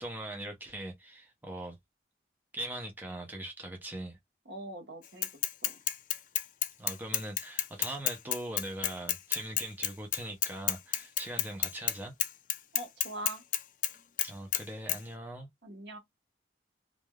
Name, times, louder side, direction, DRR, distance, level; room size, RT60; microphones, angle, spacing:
voice 1, 0.0-1.8 2.5-4.2 6.8-12.1 14.2-15.5, right 1 dB, 10° right, 0.7 m, -41 dB
voice 2, 4.4-5.3 5.6-5.8 12.7-13.4 15.6-16.0, right 1 dB, 75° right, 1.2 m, -43 dB
Bicycle / Mechanisms, 5.2-11.9 12.2-13.9 14.2-14.6 14.9-15.0, left 12 dB, 45° left, 0.4 m, -30 dB
3.2 x 2.5 x 2.3 m
head